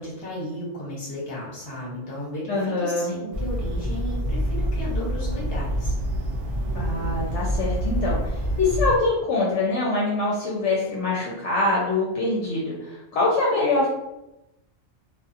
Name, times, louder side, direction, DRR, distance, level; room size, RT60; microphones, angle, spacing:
voice 1, 0.0-5.9, left 1 dB, 50° left, -5 dB, 1.1 m, -34 dB
voice 2, 2.5-3.1 6.7-13.9, left 2 dB, 75° left, -5 dB, 0.9 m, -24 dB
sound 1, 3.3-9.0, equal, 70° right, 0.9 m, -26 dB
2.6 x 2.4 x 2.4 m, 0.92 s
omnidirectional pair, 1.3 m